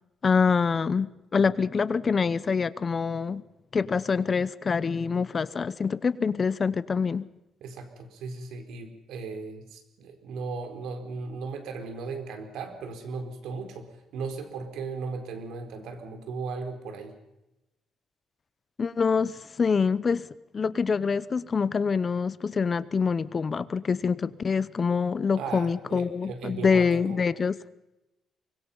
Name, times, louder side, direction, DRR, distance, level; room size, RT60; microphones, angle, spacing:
voice 1, 0.2-3.4 3.7-7.3 18.8-20.3 20.5-27.5, left 5 dB, 30° left, 17 dB, 0.8 m, -25 dB
voice 2, 7.6-17.1 25.3-27.2, right 4 dB, 90° right, 7 dB, 4.4 m, -37 dB
24.5 x 22.0 x 5.6 m, 0.93 s
cardioid pair, 145°, 0 cm